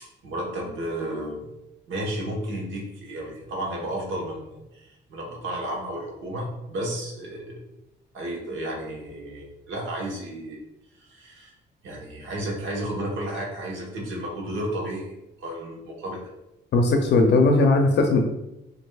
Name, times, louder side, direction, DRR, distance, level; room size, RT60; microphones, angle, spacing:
voice 1, 0.2-1.5 1.9-7.6 8.1-10.6 10.9-11.5 11.8-16.2, right 1 dB, 75° right, -2 dB, 1.1 m, -32 dB
voice 2, 16.7-18.2, left 3 dB, 60° left, 4 dB, 0.5 m, -18 dB
6.1 x 2.6 x 2.3 m, 0.92 s
cardioid pair, 90°, 20 cm